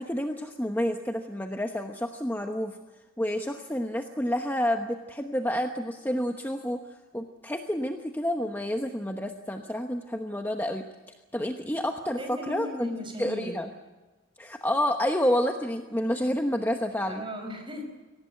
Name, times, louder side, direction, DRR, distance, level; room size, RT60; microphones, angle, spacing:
voice 1, 0.0-2.8 3.2-6.8 7.1-10.8 11.3-12.9 13.2-13.7 14.4-17.2, equal, 10° left, 4 dB, 1.0 m, -29 dB
voice 2, 12.2-13.6 17.1-17.8, left 1 dB, 25° right, 5 dB, 4.9 m, -37 dB
23.5 x 18.0 x 7.8 m, 1.2 s
head